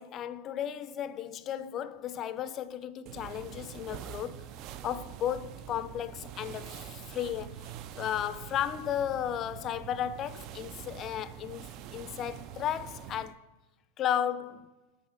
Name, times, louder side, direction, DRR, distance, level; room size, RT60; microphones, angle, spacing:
voice 1, 0.0-4.5 4.8-7.7 8.0-13.4 14.0-14.7, left 10 dB, 35° left, 0.4 m, -34 dB
sound 1, 3.1-13.4, right 10 dB, 45° right, 0.3 m, -45 dB
6.2 x 4.3 x 4.9 m
hypercardioid pair, 125°, 0 cm